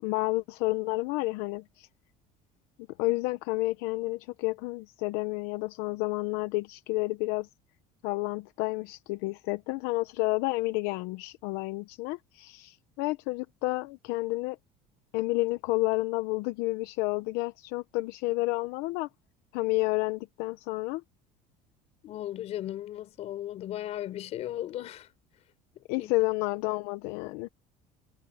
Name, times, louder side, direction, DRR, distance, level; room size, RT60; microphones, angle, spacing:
voice 1, 0.0-1.9 3.0-7.5 8.0-14.6 15.1-19.1 19.5-21.0 25.9-27.5, left 21 dB, 80° left, 0.9 m, -30 dB
voice 2, 22.0-25.1 26.0-26.1, left 12 dB, 40° left, 4.9 m, -36 dB
cardioid pair, 170°, 16 cm